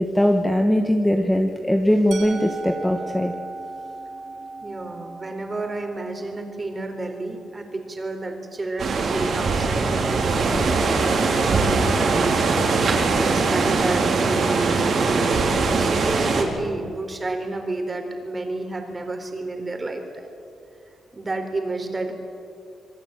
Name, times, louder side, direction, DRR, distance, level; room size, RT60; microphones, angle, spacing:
voice 1, 0.0-3.3, equal, 5° left, 4 dB, 1.4 m, -20 dB
Musical instrument, 2.1-8.0, right 3 dB, 80° right, 4.1 m, -38 dB
voice 2, 4.6-12.3 13.1-20.3 21.1-22.1, right 2 dB, 20° right, 5 dB, 3.9 m, -31 dB
sound 1, 8.8-16.4, right 4 dB, 55° right, 4.4 m, -21 dB
26.5 x 23.0 x 9.0 m, 2.6 s
wide cardioid pair, 150°, 0 cm